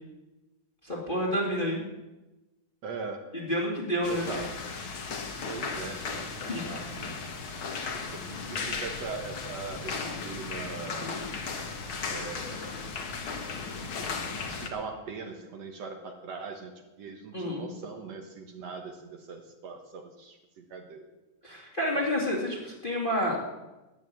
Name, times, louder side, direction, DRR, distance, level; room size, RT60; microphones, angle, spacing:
voice 1, 0.8-1.8 3.3-4.2 6.5-6.6 11.0-11.3 17.3-17.7 21.4-23.4, equal, 20° left, -2 dB, 2.1 m, -29 dB
voice 2, 2.8-3.3 4.1-4.6 5.5-7.2 7.9-11.2 12.1-12.8 13.8-14.0 14.3-21.1 21.9-22.1, right 4 dB, 60° right, 4 dB, 2.2 m, -41 dB
sound 1, 4.0-14.7, left 4 dB, 50° left, 2.0 m, -36 dB
12.5 x 10.0 x 8.5 m, 1.1 s
omnidirectional pair, 3.5 m